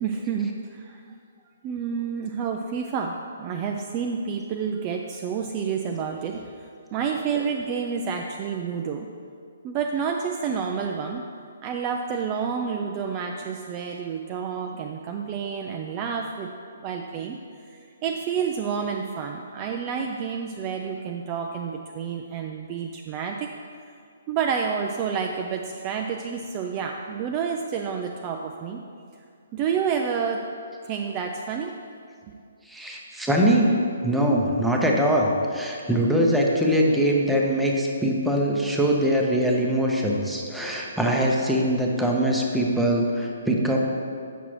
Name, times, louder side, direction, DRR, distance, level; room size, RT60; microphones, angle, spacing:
voice 1, 0.0-1.0 1.6-9.1 9.6-11.2 11.6-16.5 16.8-23.5 24.3-28.8 29.5-30.4 30.8-31.7 32.3-32.4, right 6 dB, 30° right, 2 dB, 0.3 m, -29 dB
voice 2, 32.7-33.7 34.0-43.8, equal, 5° right, -2 dB, 0.7 m, -22 dB
7.9 x 6.0 x 3.1 m, 2.3 s
figure-of-eight pair, 130°, 0 cm